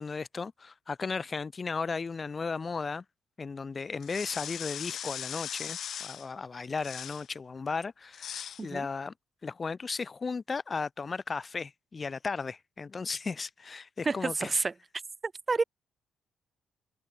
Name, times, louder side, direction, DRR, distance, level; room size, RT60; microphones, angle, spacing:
voice 1, 0.0-3.0 3.4-9.1 9.4-14.5, left 4 dB, 35° left, 4.2 m, -35 dB
sound 1, 4.0-6.3 6.8-7.3 8.1-8.6, left 9 dB, 65° left, 2.2 m, -39 dB
voice 2, 14.0-14.7 15.2-15.6, right 4 dB, 30° right, 3.0 m, -29 dB
cardioid pair, 90°, 0 cm